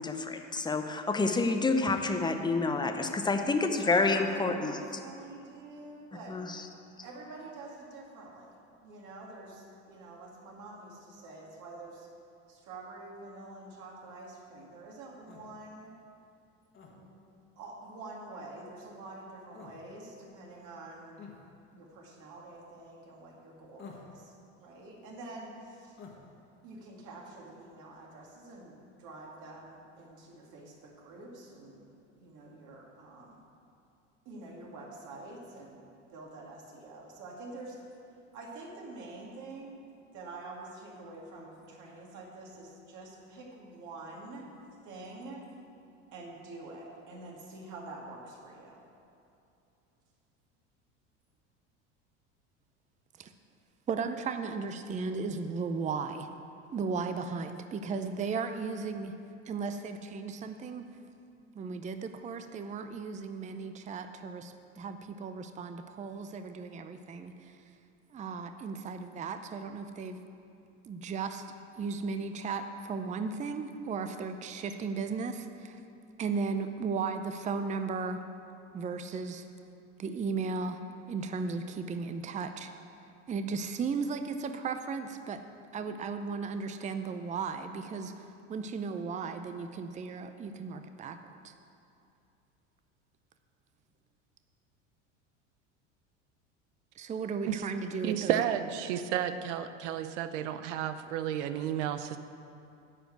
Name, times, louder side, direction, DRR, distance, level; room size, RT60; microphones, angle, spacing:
voice 1, 0.0-4.8 6.3-6.7, left 3 dB, 10° left, 6 dB, 0.8 m, -28 dB
voice 2, 4.1-6.4 7.0-12.1 12.5-15.9 16.9-17.1 17.6-21.2 21.7-26.0 26.6-33.4 34.3-35.8 36.1-37.8 38.3-39.9 40.1-44.5 44.8-45.5 46.1-48.8, right 2 dB, 55° right, -1 dB, 2.4 m, -47 dB
sound 1, 15.3-15.5 16.7-16.9 19.5-19.8 21.2-21.4 23.8-24.2 26.0-26.2, left 6 dB, 35° left, 1.7 m, -48 dB
voice 3, 53.9-56.3 56.7-59.1 59.5-60.9 61.5-67.6 68.1-70.2 70.8-71.4 71.8-75.8 76.2-78.2 78.7-79.5 80.0-80.8 81.1-82.7 83.3-85.4 85.7-91.5 97.0-98.4, right 5 dB, 20° right, 8 dB, 0.5 m, -35 dB
voice 4, 98.0-102.2, right 10 dB, 75° right, 11 dB, 0.6 m, -32 dB
9.8 x 5.1 x 7.8 m, 2.6 s
hypercardioid pair, 85°, 36 cm